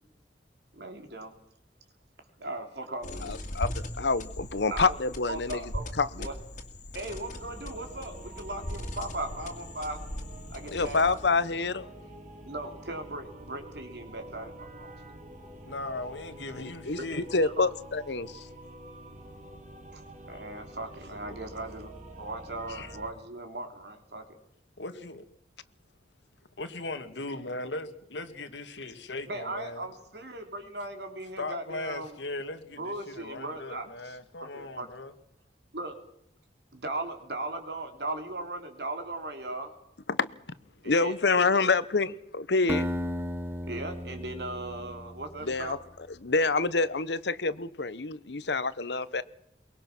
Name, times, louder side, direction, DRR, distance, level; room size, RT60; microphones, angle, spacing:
voice 1, 0.7-1.3 2.4-3.5 4.7-5.0 5.3-5.9 6.2-6.3 6.9-10.1 10.5-11.2 12.4-15.1 16.9-17.1 17.4-17.7 19.9-24.4 29.3-32.2 32.8-34.9 35.7-36.0 36.7-39.8 40.8-41.1 41.5-41.7 43.7-45.8, right 2 dB, 70° right, 3.3 m, -38 dB
sound 1, 3.0-11.4, left 1 dB, 45° left, 2.3 m, -39 dB
voice 2, 3.2-5.6 6.0-6.3 10.7-11.9 16.5-17.0 17.3-18.5 22.8-22.9 40.1-40.3 40.8-42.9 45.4-45.8 46.2-49.2, left 3 dB, 75° left, 1.0 m, -27 dB
sound 2, 7.1-23.1, right 1 dB, 45° right, 3.2 m, -47 dB
voice 3, 15.7-17.2 24.8-25.2 26.6-29.9 31.4-35.1, left 2 dB, 90° left, 1.9 m, -38 dB
Acoustic guitar, 42.7-45.7, equal, 15° right, 0.9 m, -35 dB
23.0 x 21.5 x 6.1 m
head